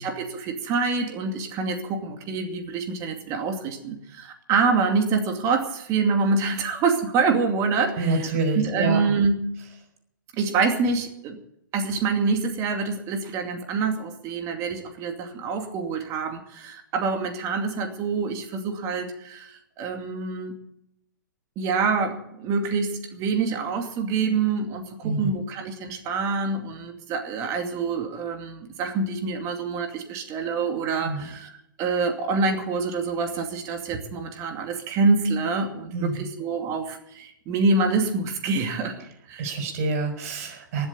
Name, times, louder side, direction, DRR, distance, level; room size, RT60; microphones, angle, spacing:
voice 1, 0.0-9.6 10.4-11.4 11.7-20.6 21.6-31.5 31.8-39.6, right 4 dB, 30° right, 4 dB, 2.5 m, -26 dB
voice 2, 8.0-9.0 25.0-25.3 31.0-31.2 35.9-36.3 39.4-40.9, right 3 dB, 45° right, 5 dB, 5.9 m, -27 dB
20.0 x 8.0 x 8.6 m, 0.77 s
hypercardioid pair, 125°, 11 cm